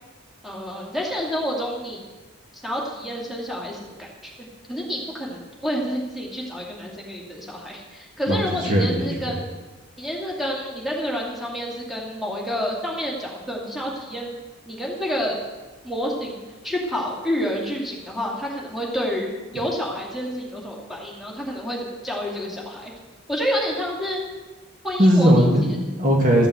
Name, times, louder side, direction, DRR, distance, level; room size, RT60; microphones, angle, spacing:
voice 1, 0.4-2.0 2.6-4.3 4.7-9.5 10.0-14.3 14.7-15.4 15.8-22.9 23.3-24.2 24.8-25.5, equal, ahead, -3 dB, 2.2 m, -29 dB
voice 2, 8.3-9.3 25.0-26.5, equal, 35° right, -1 dB, 1.9 m, -19 dB
13.5 x 6.8 x 7.8 m, 1.3 s
head